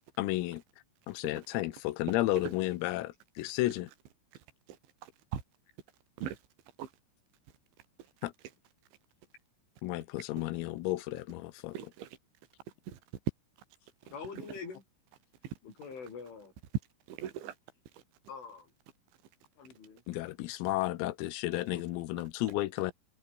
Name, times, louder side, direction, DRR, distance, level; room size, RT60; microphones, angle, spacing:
voice 1, 0.2-0.6 1.1-3.9 8.2-8.3 9.8-11.8 20.1-22.9, left 17 dB, 90° left, 4.0 m, -32 dB
voice 2, 4.3-5.4 6.2-6.4 6.8-6.9 8.2-8.5 11.7-12.2 12.9-13.0 14.4-14.6 15.4-15.5 17.1-17.6 17.9-18.0 21.5-21.6, right 10 dB, 65° right, 5.1 m, -42 dB
voice 3, 14.0-14.8 15.6-16.5 18.3-18.7 19.6-20.0, left 5 dB, 65° left, 9.1 m, -44 dB
omnidirectional pair, 5.9 m